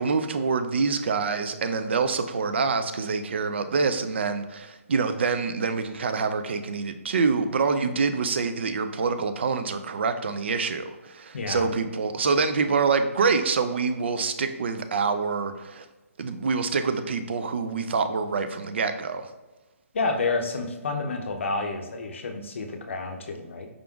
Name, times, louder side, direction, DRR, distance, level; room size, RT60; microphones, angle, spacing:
voice 1, 0.0-15.9 16.2-19.3, right 5 dB, 50° right, 9 dB, 0.3 m, -26 dB
voice 2, 11.3-11.7 19.9-23.7, left 3 dB, 55° left, 4 dB, 0.6 m, -29 dB
4.9 x 3.5 x 2.3 m, 1.1 s
hypercardioid pair, 170°, 8 cm